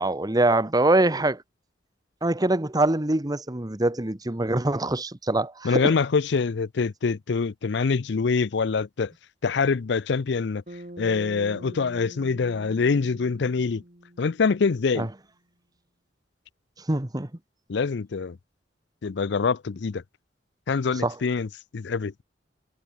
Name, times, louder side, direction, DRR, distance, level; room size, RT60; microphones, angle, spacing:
voice 1, 0.0-1.4 2.2-5.9 15.0-15.1 16.9-17.3 21.0-21.1, right 2 dB, 20° right, 1.2 m, -24 dB
voice 2, 5.6-9.1 9.4-10.6 11.0-13.8 14.2-15.1 17.7-18.4 19.0-20.0 20.7-22.1, left 5 dB, 70° left, 0.5 m, -25 dB
Bass guitar, 10.7-15.1, right 1 dB, 45° right, 3.3 m, -45 dB
head